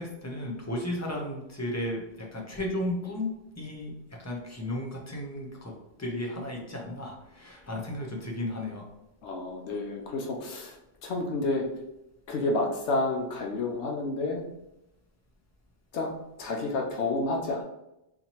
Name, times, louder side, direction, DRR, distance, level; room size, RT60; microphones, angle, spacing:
voice 1, 0.0-5.7 6.0-8.9, left 1 dB, 20° left, -1 dB, 0.6 m, -34 dB
voice 2, 9.2-10.8 11.0-11.7 12.3-14.4 15.9-16.1 16.4-17.6, left 2 dB, 80° left, 1 dB, 0.9 m, -30 dB
4.2 x 2.9 x 2.9 m, 0.90 s
omnidirectional pair, 1.1 m